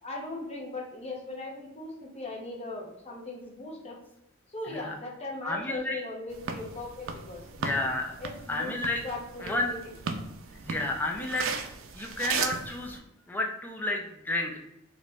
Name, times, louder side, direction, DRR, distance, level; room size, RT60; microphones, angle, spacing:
voice 1, 0.0-4.0 4.5-7.5 8.2-8.7 9.0-9.8, left 2 dB, 30° left, -2 dB, 0.8 m, -39 dB
voice 2, 5.4-6.0 7.6-8.1 8.5-9.0 9.4-9.7 10.6-11.5 11.9-13.0 13.3-14.6, left 2 dB, 10° left, 1 dB, 0.4 m, -31 dB
sound 1, 6.3-13.0, right 5 dB, 70° right, 0.4 m, -36 dB
3.0 x 2.5 x 3.3 m, 0.81 s
head